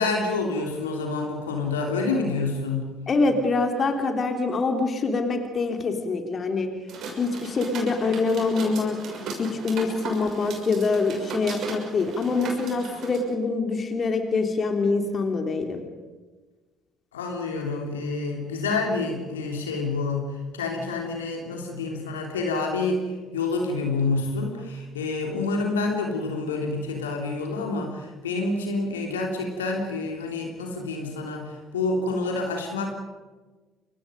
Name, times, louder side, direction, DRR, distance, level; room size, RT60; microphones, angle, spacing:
voice 1, 0.0-3.0 17.1-32.9, left 3 dB, 75° left, 2 dB, 3.3 m, -28 dB
voice 2, 3.1-6.7 7.2-9.0 9.4-15.9, left 3 dB, 40° left, 5 dB, 3.3 m, -25 dB
sound 1, 6.9-13.2, right 3 dB, 55° right, 6.2 m, -37 dB
30.0 x 24.5 x 5.3 m, 1.3 s
figure-of-eight pair, 50°, 0 cm